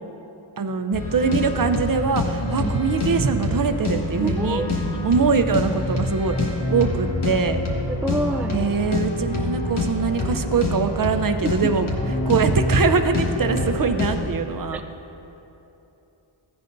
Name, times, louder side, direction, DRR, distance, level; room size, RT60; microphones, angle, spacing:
voice 1, 0.6-4.6 5.0-6.4 6.7-7.6 8.5-11.9 12.3-14.8, right 5 dB, 45° right, 8 dB, 0.7 m, -22 dB
sound 1, 0.9-14.3, left 2 dB, 75° left, 1.7 m, -26 dB
voice 2, 4.2-4.7 7.9-8.7 14.7-14.8, right 2 dB, 5° right, 5 dB, 0.4 m, -27 dB
15.5 x 10.5 x 2.7 m, 3.0 s
wide cardioid pair, 55°, 49 cm